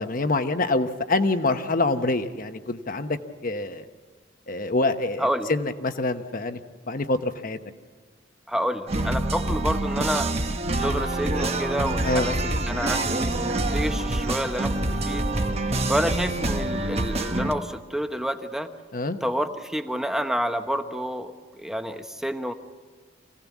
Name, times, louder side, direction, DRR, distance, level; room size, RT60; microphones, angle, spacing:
voice 1, 0.0-3.2 3.4-3.9 4.5-6.6 6.9-7.6 12.0-12.3 18.9-19.2, left 2 dB, 45° left, 8 dB, 1.1 m, -25 dB
voice 2, 5.2-5.5 8.5-10.3 10.7-15.2 15.9-18.7 19.2-21.3 21.6-22.5, equal, ahead, 7 dB, 0.9 m, -29 dB
sound 1, 8.9-17.5, right 2 dB, 35° right, 1.1 m, -26 dB
25.5 x 17.0 x 7.4 m, 1.6 s
head